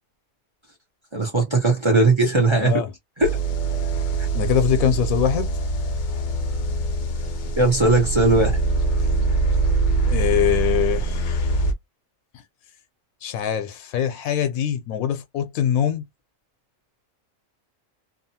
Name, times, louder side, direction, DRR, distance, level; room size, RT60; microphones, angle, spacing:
voice 1, 1.1-2.7 3.2-3.4 7.6-8.6, right 2 dB, 30° right, 0.6 m, -18 dB
voice 2, 2.6-2.9 4.3-5.5 10.1-11.5 13.2-16.0, left 10 dB, 85° left, 1.0 m, -23 dB
sound 1, 3.2-11.7, right 3 dB, 65° left, 0.4 m, -23 dB
2.8 x 2.3 x 2.7 m
omnidirectional pair, 1.4 m